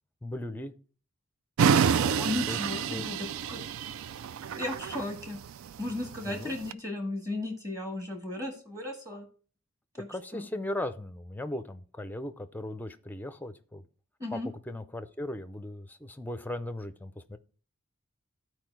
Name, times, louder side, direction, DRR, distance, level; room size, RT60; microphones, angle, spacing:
voice 1, 0.2-0.7 2.3-2.6 2.9-3.1 6.2-6.6 10.1-13.8 14.3-14.4 14.7-17.4, left 1 dB, 10° left, 0.5 m, -37 dB
sound 1, 1.6-6.7, right 7 dB, 65° right, 0.3 m, -28 dB
voice 2, 2.0-3.6 4.6-5.4 5.8-9.3 9.9-10.1 10.3-10.5 14.2-14.5, left 2 dB, 15° right, 1.6 m, -35 dB
12.0 x 4.7 x 4.6 m
head